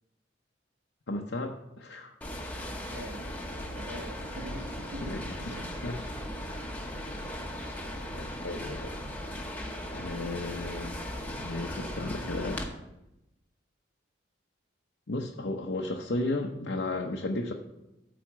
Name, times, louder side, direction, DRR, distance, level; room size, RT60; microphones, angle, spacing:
voice 1, 1.1-2.1 5.0-5.5 5.8-6.0 6.9-7.2 8.0-8.9 9.9-10.9 11.3-12.6 15.1-17.5, left 2 dB, 65° left, 1 dB, 0.7 m, -34 dB
sound 1, 2.2-12.7, left 1 dB, 10° left, 0.9 m, -38 dB
voice 2, 2.9-5.1 5.5-5.6 8.3-8.6, right 1 dB, 90° right, -1 dB, 1.3 m, -44 dB
9.2 x 4.2 x 7.3 m, 0.91 s
head